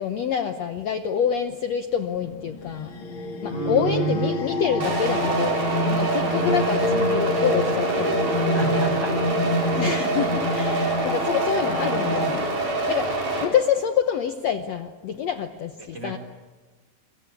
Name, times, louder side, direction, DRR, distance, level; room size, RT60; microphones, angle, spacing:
voice 1, 0.0-2.9 3.4-8.6 9.7-12.4 12.9-16.2, left 8 dB, 70° left, 7 dB, 1.7 m, -27 dB
sound 1, 2.2-12.4, left 1 dB, 40° left, 2.5 m, -27 dB
voice 2, 3.5-4.4 4.8-4.9 8.3-9.2 15.8-16.2, right 5 dB, 35° right, 3 dB, 1.9 m, -30 dB
sound 2, 4.8-13.4, right 3 dB, 60° right, 5.8 m, -26 dB
26.5 x 23.0 x 8.5 m, 1.4 s
omnidirectional pair, 4.2 m